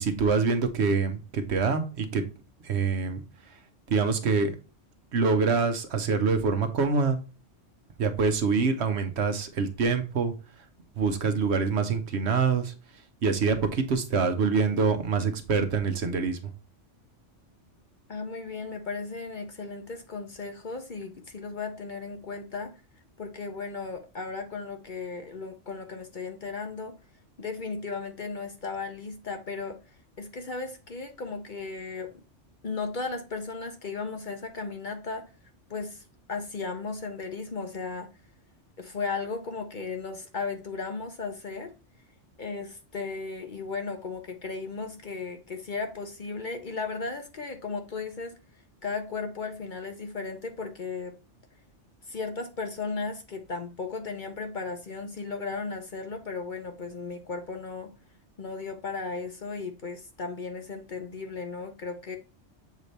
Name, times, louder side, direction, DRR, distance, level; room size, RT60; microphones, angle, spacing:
voice 1, 0.0-2.2 2.6-3.2 3.9-4.5 5.1-7.2 8.0-10.3 11.0-12.7 13.2-16.5, right 4 dB, 65° right, 1.0 m, -25 dB
voice 2, 18.1-22.7 23.2-26.9 27.4-32.1 32.6-35.3 35.7-36.0 36.3-38.1 38.8-41.7 42.4-48.4 48.8-51.2 52.0-57.9 58.4-62.2, left 4 dB, 45° left, 0.8 m, -35 dB
7.4 x 3.3 x 4.1 m
omnidirectional pair, 1.3 m